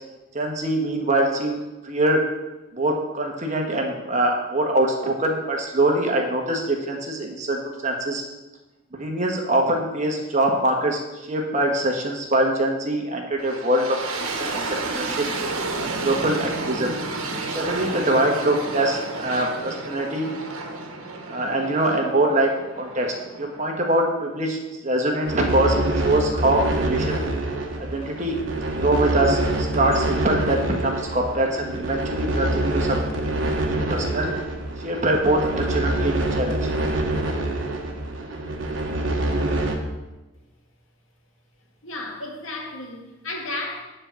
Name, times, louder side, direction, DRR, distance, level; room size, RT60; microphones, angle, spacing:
voice 1, 0.3-1.6 1.8-2.2 2.7-8.2 8.9-15.2 15.8-17.0 17.5-20.3 21.3-22.5 22.8-27.2 27.8-28.4 28.8-34.3 34.8-36.7, right 1 dB, 35° right, 2 dB, 1.3 m, -23 dB
sound 1, 13.4-24.3, right 3 dB, 80° right, 1.3 m, -31 dB
sound 2, 25.3-39.8, right 1 dB, 60° right, 1.3 m, -26 dB
voice 2, 41.8-43.8, left 2 dB, 70° left, 0 dB, 1.9 m, -33 dB
9.8 x 4.5 x 7.0 m, 1.1 s
head